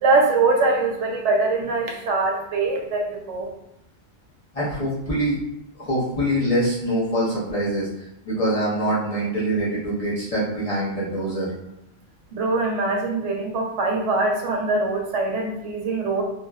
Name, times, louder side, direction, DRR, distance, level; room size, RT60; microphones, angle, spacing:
voice 1, 0.0-3.5 12.3-16.2, right 3 dB, 85° right, 0 dB, 0.9 m, -22 dB
voice 2, 4.5-5.4 5.8-7.9 8.2-11.5, right 1 dB, 35° left, -9 dB, 0.8 m, -24 dB
2.6 x 2.1 x 2.2 m, 0.83 s
omnidirectional pair, 1.2 m